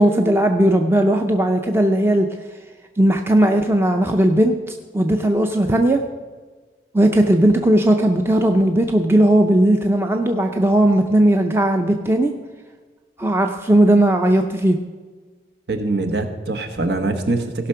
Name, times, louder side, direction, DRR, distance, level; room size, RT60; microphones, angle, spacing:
voice 1, 0.0-2.3 3.0-6.0 6.9-12.3 13.2-14.8, right 1 dB, 15° right, 4 dB, 0.5 m, -17 dB
voice 2, 15.7-17.7, right 2 dB, 75° right, 6 dB, 1.1 m, -23 dB
17.0 x 5.9 x 5.7 m, 1.4 s
head